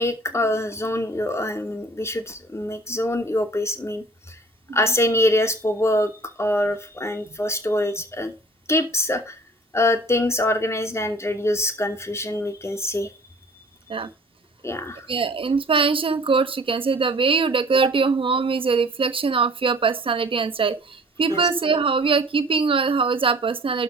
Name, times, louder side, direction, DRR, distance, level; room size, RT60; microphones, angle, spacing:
voice 1, 0.0-4.4 4.7-8.3 8.7-9.4 9.7-13.1 14.6-15.1 21.3-21.5, left 1 dB, 30° left, 2.6 m, -24 dB
voice 2, 15.1-23.8, right 5 dB, 85° right, 1.1 m, -22 dB
12.5 x 4.8 x 6.6 m
cardioid pair, 50°, 9 cm